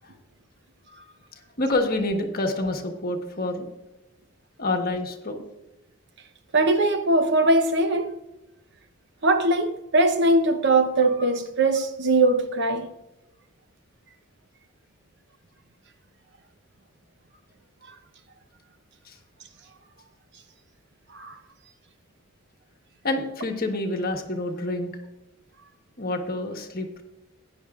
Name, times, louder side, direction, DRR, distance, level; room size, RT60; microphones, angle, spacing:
voice 1, 1.6-3.7 4.6-5.4 19.0-19.2 23.0-24.9 26.0-27.0, left 2 dB, 45° left, 1.3 m, -27 dB
voice 2, 6.5-8.1 9.2-12.9 21.1-21.3, right 2 dB, 55° right, 0.9 m, -21 dB
15.5 x 9.9 x 2.5 m
head